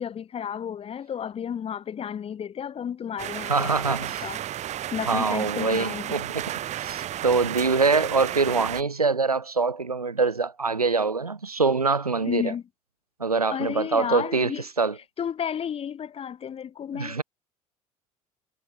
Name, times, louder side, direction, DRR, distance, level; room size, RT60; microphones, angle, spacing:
voice 1, 0.0-4.4 4.9-6.2 12.2-12.6 13.5-14.6 15.2-17.2, left 8 dB, 30° left, 1.5 m, -32 dB
sound 1, 3.2-8.8, right 12 dB, 40° right, 0.9 m, -33 dB
voice 2, 3.5-4.2 5.1-6.4 6.8-12.5 13.2-15.0 16.9-17.2, right 4 dB, 90° right, 1.1 m, -24 dB
figure-of-eight pair, 65°, 19 cm